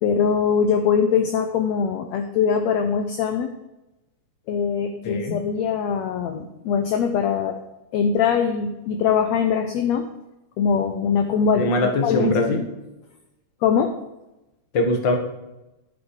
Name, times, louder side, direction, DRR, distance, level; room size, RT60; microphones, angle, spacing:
voice 1, 0.0-3.5 4.5-7.6 7.9-10.1 10.6-11.7 12.0-12.7 13.6-13.9, left 7 dB, 70° left, 6 dB, 1.7 m, -22 dB
voice 2, 5.0-5.4 11.5-12.6 14.7-15.2, left 1 dB, 40° left, 3 dB, 2.0 m, -21 dB
11.5 x 9.3 x 4.9 m, 0.97 s
omnidirectional pair, 3.9 m